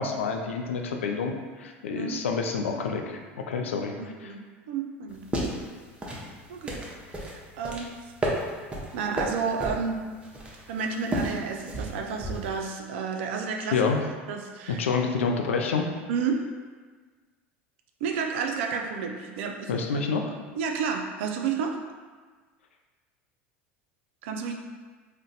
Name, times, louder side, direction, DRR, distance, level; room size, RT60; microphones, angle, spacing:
voice 1, 0.0-1.3 1.6-3.9 4.2-4.3 13.7-14.0 14.7-15.9 19.7-20.3, left 5 dB, 85° left, 3 dB, 0.3 m, -28 dB
voice 2, 1.9-2.2 4.0-5.5 6.5-6.8 7.2-8.1 8.9-10.1 10.7-13.9 14.3-14.9 16.1-16.4 18.0-20.1 20.5-21.8 24.2-24.6, right 5 dB, 70° right, 3 dB, 0.4 m, -31 dB
sound 1, 5.1-12.6, right 1 dB, 15° right, 0.7 m, -33 dB
2.5 x 2.1 x 3.9 m, 1.4 s
hypercardioid pair, 85°, 7 cm